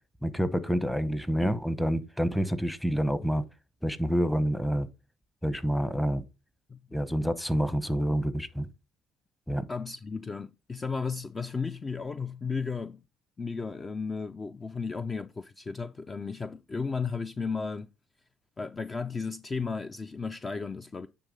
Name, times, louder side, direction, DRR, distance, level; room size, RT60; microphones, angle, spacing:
voice 1, 0.2-3.4 3.8-4.9 5.4-6.2 6.9-8.7 9.5-9.6, equal, 5° left, 0.9 m, -28 dB
voice 2, 6.7-7.0 9.7-13.0 13.4-17.9 18.6-21.1, left 5 dB, 30° left, 0.4 m, -34 dB
9.7 x 3.3 x 5.2 m
supercardioid pair, 75°, 0 cm